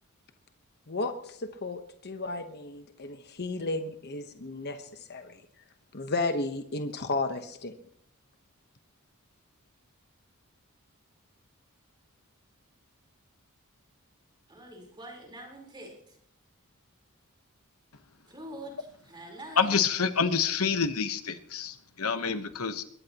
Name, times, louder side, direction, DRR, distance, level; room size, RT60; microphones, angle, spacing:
voice 1, 0.9-5.4 5.9-7.7, left 2 dB, 50° left, 7 dB, 1.1 m, -33 dB
voice 2, 14.5-16.2 18.3-19.8, right 1 dB, 20° right, 0 dB, 4.2 m, -45 dB
voice 3, 19.6-22.8, left 6 dB, 75° left, 10 dB, 1.2 m, -27 dB
22.5 x 18.0 x 3.0 m, 0.66 s
head